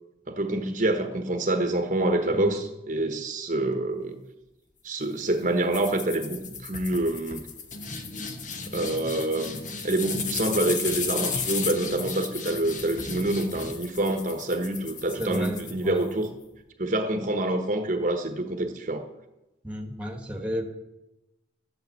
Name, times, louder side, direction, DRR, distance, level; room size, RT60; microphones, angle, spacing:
voice 1, 0.3-4.2 4.8-7.5 8.7-16.3 16.8-19.0, right 1 dB, 40° right, 5 dB, 1.1 m, -27 dB
sound 1, 5.7-16.3, left 5 dB, 40° left, 1.2 m, -34 dB
voice 2, 15.2-16.0 19.6-20.6, equal, 5° right, 3 dB, 1.6 m, -33 dB
12.5 x 8.6 x 8.1 m, 0.97 s
head